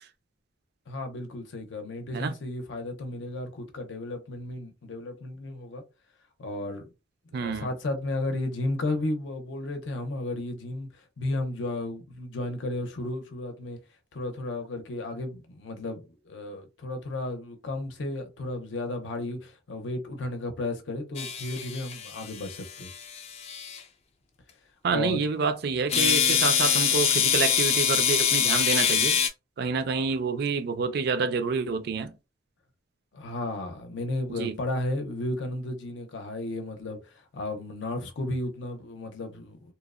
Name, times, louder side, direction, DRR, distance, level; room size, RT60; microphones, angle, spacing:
voice 1, 0.9-5.8 6.4-6.9 7.3-13.8 14.1-22.9 24.9-25.2 33.1-39.7, left 2 dB, 85° left, 0.6 m, -33 dB
voice 2, 7.3-7.7 24.8-29.2 29.6-32.1 34.4-34.6, right 5 dB, 60° right, 0.4 m, -28 dB
sound 1, 21.2-23.8 25.9-29.3, left 8 dB, 35° left, 0.3 m, -25 dB
2.8 x 2.0 x 2.4 m
head